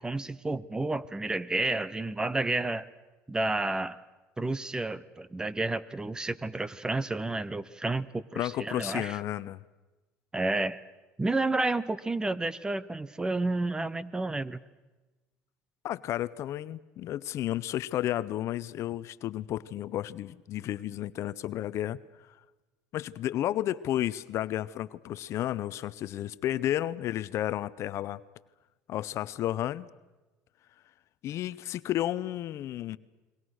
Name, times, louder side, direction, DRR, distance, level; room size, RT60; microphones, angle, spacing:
voice 1, 0.0-2.9 3.3-4.0 4.4-9.2 10.3-10.8 11.2-14.6, right 2 dB, 15° right, 19 dB, 0.9 m, -31 dB
voice 2, 8.4-9.6 15.8-22.0 22.9-28.2 28.9-29.9 31.2-33.0, left 13 dB, 55° left, 17 dB, 0.7 m, -32 dB
30.0 x 22.0 x 6.4 m, 1.1 s
supercardioid pair, 105°, 6 cm